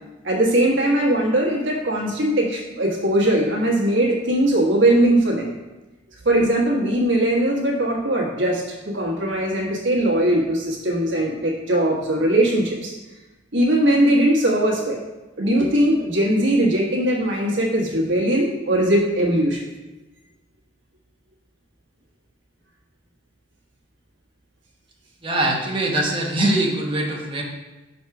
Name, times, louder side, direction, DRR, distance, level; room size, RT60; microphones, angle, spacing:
voice 1, 0.2-5.5 6.2-12.9 13.5-15.0 15.4-19.6, right 1 dB, 60° right, -2 dB, 1.4 m, -20 dB
voice 2, 25.2-27.4, right 1 dB, 25° right, -1 dB, 1.0 m, -22 dB
5.9 x 4.2 x 5.8 m, 1.1 s
head